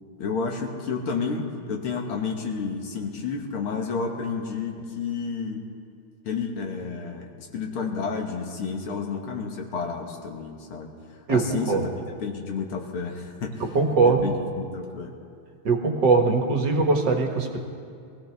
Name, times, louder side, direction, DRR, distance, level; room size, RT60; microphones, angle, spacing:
voice 1, 0.2-5.7 6.2-10.9 11.3-11.8 12.2-13.6 14.0-15.1, left 5 dB, 80° left, 2 dB, 2.3 m, -31 dB
voice 2, 11.3-11.9 13.6-14.2 15.7-17.6, right 4 dB, 60° right, 3 dB, 2.0 m, -21 dB
23.5 x 16.0 x 3.5 m, 2.3 s
omnidirectional pair, 2.3 m